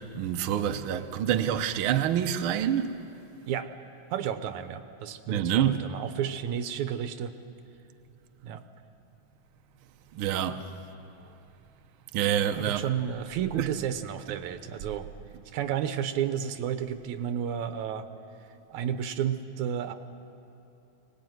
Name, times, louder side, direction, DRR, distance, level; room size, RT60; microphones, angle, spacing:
voice 1, 0.0-2.9 5.3-5.8 10.1-10.6 12.1-12.8 13.6-13.7, right 10 dB, 65° right, 1.4 m, -27 dB
voice 2, 4.1-7.3 8.4-8.6 12.6-15.1 15.5-18.1 18.7-19.9, right 9 dB, 90° right, 2.4 m, -32 dB
24.5 x 19.0 x 9.4 m
omnidirectional pair, 3.3 m